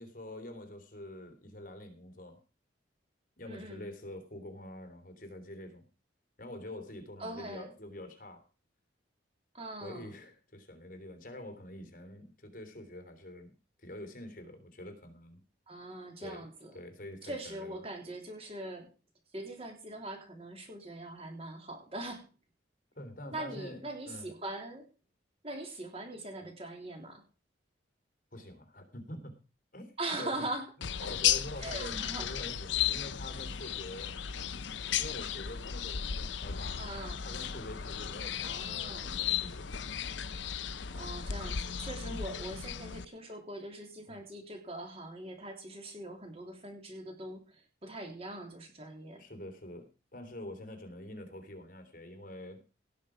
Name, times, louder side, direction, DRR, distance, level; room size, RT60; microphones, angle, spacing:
voice 1, 0.0-2.4 3.4-5.9 6.4-8.4 9.8-13.5 13.8-15.4 16.2-16.5 16.7-17.8 22.9-24.3 28.3-29.3 29.7-29.9 30.2-30.5 31.1-34.1 35.0-36.8 37.2-39.8 42.0-42.2 44.1-44.2 49.1-52.6, left 1 dB, 45° left, 7 dB, 3.3 m, -46 dB
voice 2, 3.5-3.8 7.2-7.7 9.5-10.1 15.7-16.7 17.2-18.9 19.3-22.3 23.3-24.8 25.4-27.2 30.0-30.7 31.6-32.3 36.8-37.2 38.4-39.2 40.9-49.2, right 1 dB, 30° right, 3 dB, 3.3 m, -42 dB
sound 1, 30.8-43.0, left 9 dB, 70° left, 0.7 m, -35 dB
17.5 x 7.4 x 5.1 m, 0.34 s
head